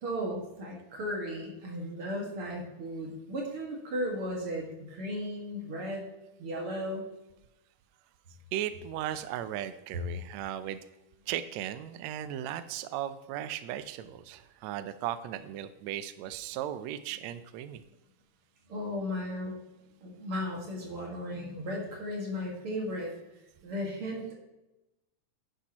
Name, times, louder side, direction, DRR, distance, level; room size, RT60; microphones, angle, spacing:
voice 1, 0.0-6.0 6.4-7.1 18.7-19.6 20.0-23.1 23.6-24.3, equal, 50° right, -1 dB, 2.4 m, -35 dB
voice 2, 8.5-10.8 11.3-17.8, right 11 dB, 85° right, 12 dB, 1.5 m, -36 dB
10.5 x 10.0 x 2.9 m, 0.96 s
omnidirectional pair, 3.7 m